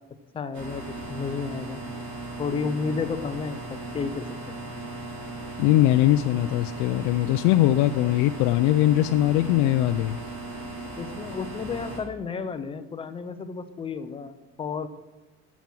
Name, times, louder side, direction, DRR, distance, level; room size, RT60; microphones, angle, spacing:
voice 1, 0.3-1.8 2.4-4.6 11.0-14.9, left 5 dB, 15° left, 9 dB, 0.6 m, -32 dB
sound 1, 0.5-12.0, right 2 dB, 55° right, 4.4 m, -37 dB
voice 2, 5.6-10.2, left 14 dB, 65° left, 8 dB, 0.5 m, -21 dB
13.5 x 7.2 x 7.6 m, 1.1 s
cardioid pair, 170°, 32 cm